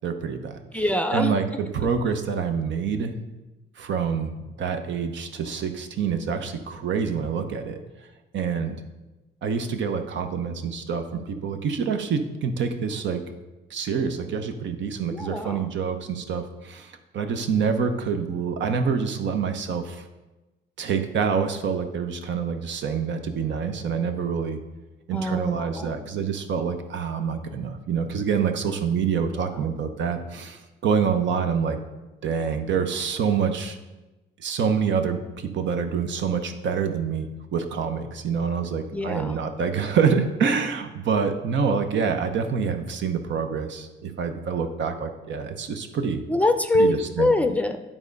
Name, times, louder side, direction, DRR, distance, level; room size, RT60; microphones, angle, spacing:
voice 1, 0.0-0.6 1.1-3.1 3.8-7.8 8.3-8.8 9.4-13.2 13.7-20.0 20.8-24.6 25.1-31.8 32.2-33.8 34.4-46.2 46.7-47.3, right 6 dB, 70° right, 7 dB, 0.8 m, -26 dB
voice 2, 0.7-1.3 15.1-15.7 25.1-26.0 29.3-29.8 38.9-39.4 46.3-47.8, left 2 dB, 5° left, 7 dB, 0.5 m, -24 dB
9.0 x 3.6 x 5.2 m, 1.1 s
cardioid pair, 90°, 20 cm